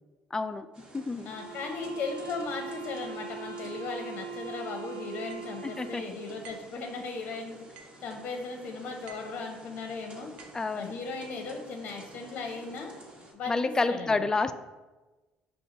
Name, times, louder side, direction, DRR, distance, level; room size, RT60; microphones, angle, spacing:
voice 1, 0.3-0.7 0.9-1.3 5.6-6.0 10.5-11.0 13.5-14.5, left 3 dB, 20° left, 11 dB, 0.3 m, -29 dB
sound 1, 0.7-13.3, right 1 dB, 35° right, 1.3 m, -51 dB
voice 2, 1.2-7.6 8.0-10.3 10.7-12.9 13.3-14.3, left 4 dB, 55° left, 3 dB, 0.6 m, -37 dB
sound 2, 1.2-6.1, right 5 dB, 90° right, 0.9 m, -41 dB
sound 3, 5.3-5.5 6.4-6.8 7.8-8.1 9.1-9.4 10.4-10.7, right 6 dB, 75° right, 0.5 m, -51 dB
5.6 x 2.3 x 3.8 m, 1.2 s
supercardioid pair, 80°, 3 cm